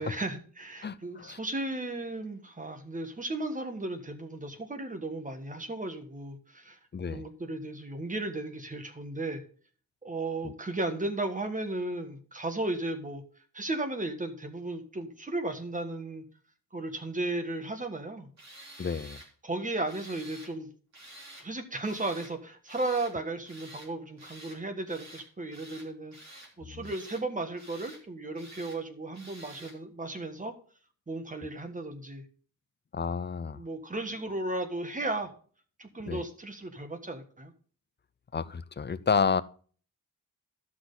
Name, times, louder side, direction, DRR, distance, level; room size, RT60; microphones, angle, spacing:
voice 1, 0.0-6.8 7.1-9.4 10.0-13.2 13.5-16.2 16.7-18.3 19.4-20.7 21.4-30.5 31.1-32.2 33.5-35.3 35.8-37.5, right 2 dB, 20° right, 1.4 m, -35 dB
voice 2, 0.8-1.4 6.9-7.2 10.4-10.5 18.8-19.2 26.7-26.9 32.9-33.6 36.1-36.2 38.3-39.4, left 5 dB, 30° left, 0.5 m, -30 dB
Tools, 18.4-19.3 19.9-20.5 20.9-21.5 21.8-22.3 22.7-23.1 23.5-23.9 24.2-24.6 24.9-25.3 25.5-26.5 26.8-27.2 27.6-28.0 28.4-28.8 29.1-29.8, right 1 dB, 50° right, 3.2 m, -49 dB
14.0 x 6.1 x 3.9 m
wide cardioid pair, 165°, 36 cm